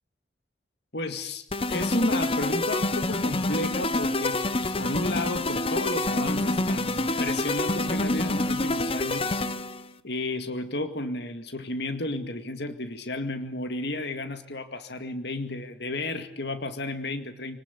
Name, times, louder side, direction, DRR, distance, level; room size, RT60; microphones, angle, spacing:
voice 1, 0.9-9.4 10.0-17.6, left 2 dB, 60° left, 8 dB, 2.2 m, -32 dB
sound 1, 1.5-9.8, left 2 dB, 30° left, 1.0 m, -27 dB
28.0 x 19.5 x 8.3 m, 0.74 s
head